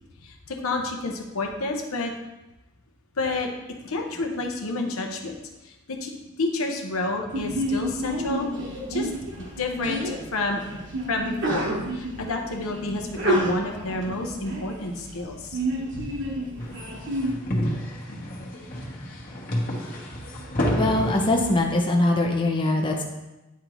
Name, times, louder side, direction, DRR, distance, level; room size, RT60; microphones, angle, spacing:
voice 1, 0.2-2.1 3.2-3.5 3.8-5.4 5.6-8.5 8.9-9.1 9.6-10.8 11.1-15.6, left 2 dB, 75° left, 2 dB, 0.8 m, -29 dB
Sneeze, 7.3-17.3, right 1 dB, 55° right, 1.2 m, -30 dB
sound 1, 16.6-21.6, equal, 45° left, 1.2 m, -29 dB
voice 2, 20.8-23.0, left 2 dB, 25° left, 0 dB, 0.6 m, -22 dB
9.4 x 3.8 x 3.0 m, 1.0 s
head